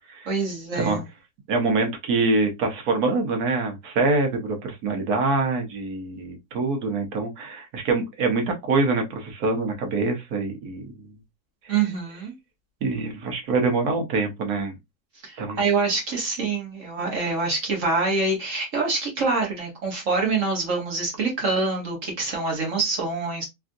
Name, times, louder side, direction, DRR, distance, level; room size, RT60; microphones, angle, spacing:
voice 1, 0.3-1.0 11.7-12.3 15.2-23.4, right 4 dB, 55° right, 1.4 m, -25 dB
voice 2, 1.5-10.9 12.8-14.7 15.4-15.6, right 3 dB, 80° right, 1.4 m, -25 dB
3.5 x 2.5 x 2.5 m
omnidirectional pair, 1.6 m